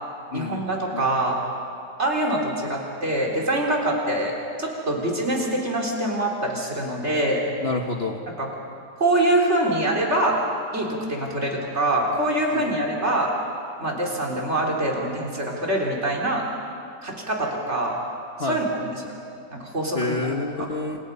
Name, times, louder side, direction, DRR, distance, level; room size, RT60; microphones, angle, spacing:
voice 1, 0.3-1.4 2.0-7.4 8.3-8.5 9.0-10.4 10.7-13.3 13.8-16.5 17.0-18.0 18.4-19.1 19.5-20.2 20.6-20.7, right 1 dB, 40° right, -2 dB, 4.2 m, -24 dB
voice 2, 7.6-8.2 12.5-12.8 18.4-18.6 19.9-21.0, left 3 dB, 40° left, 2 dB, 1.4 m, -28 dB
28.5 x 27.5 x 5.5 m, 2.4 s
omnidirectional pair, 1.8 m